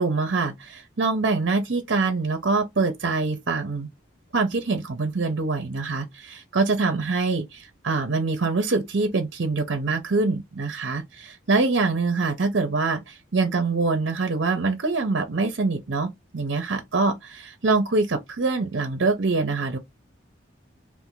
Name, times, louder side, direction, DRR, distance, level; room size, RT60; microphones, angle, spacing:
voice 1, 0.0-3.9 4.3-19.8, right 3 dB, 65° right, 0.7 m, -24 dB
2.5 x 2.5 x 3.7 m
head